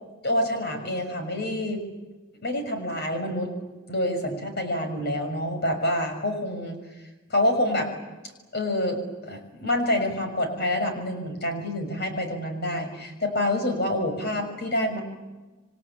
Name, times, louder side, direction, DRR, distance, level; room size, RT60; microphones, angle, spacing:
voice 1, 0.2-1.8 2.4-3.5 3.9-6.8 7.3-7.9 8.5-15.0, left 1 dB, 50° left, 5 dB, 6.5 m, -27 dB
28.0 x 24.5 x 8.6 m, 1.2 s
head